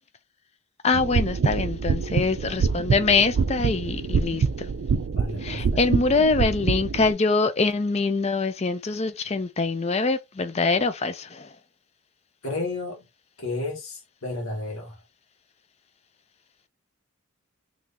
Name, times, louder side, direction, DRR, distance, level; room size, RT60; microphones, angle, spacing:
voice 1, 0.8-4.7 5.4-11.5, left 3 dB, 30° left, 0.5 m, -24 dB
sound 1, 0.9-7.1, right 5 dB, 70° right, 0.4 m, -26 dB
voice 2, 5.1-5.8 12.4-13.1 13.4-15.0, left 2 dB, 80° left, 1.7 m, -32 dB
3.8 x 3.1 x 2.8 m
head